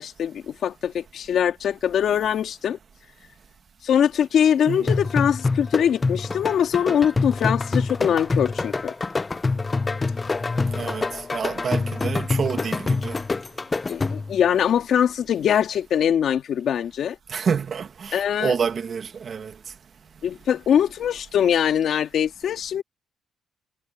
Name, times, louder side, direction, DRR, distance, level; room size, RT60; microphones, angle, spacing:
voice 1, 0.0-2.8 3.8-8.9 13.9-17.2 18.1-18.5 20.2-22.8, left 9 dB, 65° left, 1.8 m, -22 dB
voice 2, 4.7-5.1 10.7-13.2 17.3-19.5, right 6 dB, 50° right, 1.4 m, -28 dB
sound 1, 4.9-14.4, left 3 dB, 25° left, 0.5 m, -26 dB
cardioid pair, 90°, 0 cm